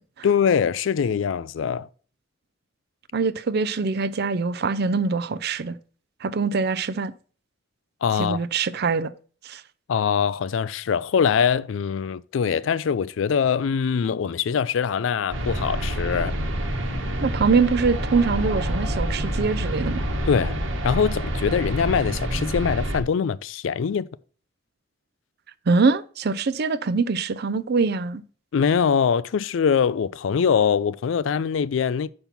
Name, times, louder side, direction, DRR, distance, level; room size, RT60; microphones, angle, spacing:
voice 1, 0.2-1.9 8.0-8.4 9.9-16.4 20.3-20.6 20.8-24.1 28.5-32.1, left 7 dB, 70° left, 0.4 m, -23 dB
voice 2, 3.1-5.8 6.2-7.1 8.2-9.1 9.4-9.6 17.2-20.0 25.7-28.2, right 4 dB, 55° right, 0.5 m, -23 dB
sound 1, 15.3-23.0, equal, 80° right, 1.3 m, -27 dB
5.9 x 5.3 x 5.8 m
head